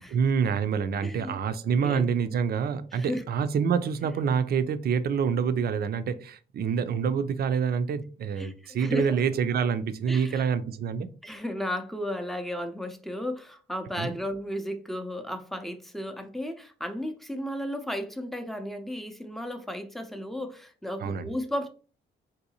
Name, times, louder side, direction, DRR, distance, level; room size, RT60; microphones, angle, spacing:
voice 1, 0.1-11.1 14.0-14.1 21.0-21.3, right 6 dB, 50° right, 0.5 m, -27 dB
voice 2, 1.0-1.3 1.8-2.0 2.9-3.3 8.4-9.2 10.1-10.5 11.2-21.7, equal, ahead, 0.6 m, -34 dB
3.8 x 2.7 x 2.8 m
cardioid pair, 90°, 20 cm